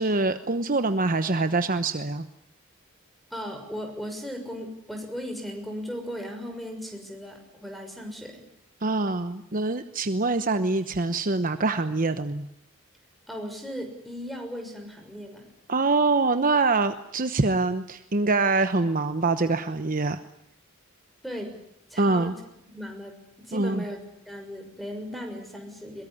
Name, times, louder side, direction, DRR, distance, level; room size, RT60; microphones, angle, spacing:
voice 1, 0.0-2.3 8.8-12.5 15.7-20.2 22.0-22.3 23.5-23.8, right 3 dB, 40° right, 10 dB, 1.0 m, -24 dB
voice 2, 3.3-8.4 13.3-15.4 21.2-21.5 21.9-22.3 22.7-26.0, equal, ahead, 5 dB, 6.3 m, -37 dB
22.5 x 22.5 x 10.0 m, 0.80 s
head